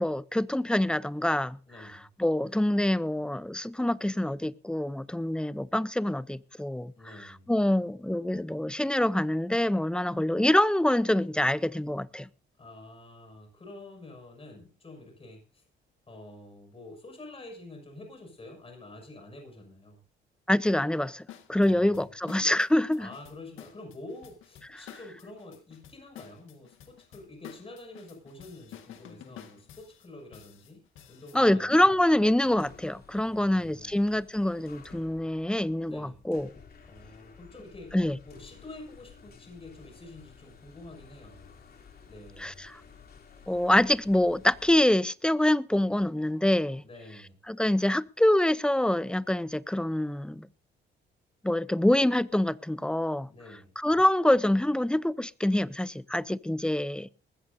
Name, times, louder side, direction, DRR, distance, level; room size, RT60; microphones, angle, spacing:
voice 1, 0.0-1.6 2.2-6.9 7.5-12.3 20.5-23.1 31.3-36.5 37.9-38.2 42.4-42.8 43.5-46.8 47.5-50.5 51.4-53.3 53.8-57.1, left 1 dB, 5° left, 0.7 m, -25 dB
voice 2, 1.7-2.1 7.0-7.5 12.6-15.6 16.1-20.0 21.6-22.1 23.0-30.8 31.1-32.0 32.4-32.5 33.2-34.0 35.9-36.2 36.9-38.0 38.2-41.5 42.1-42.6 46.8-47.4 53.3-53.7, left 2 dB, 30° left, 6.4 m, -48 dB
sound 1, 21.3-31.4, left 10 dB, 85° left, 1.9 m, -50 dB
sound 2, 32.0-44.8, left 6 dB, 50° left, 3.1 m, -54 dB
20.5 x 15.0 x 2.7 m
cardioid pair, 90°, 20 cm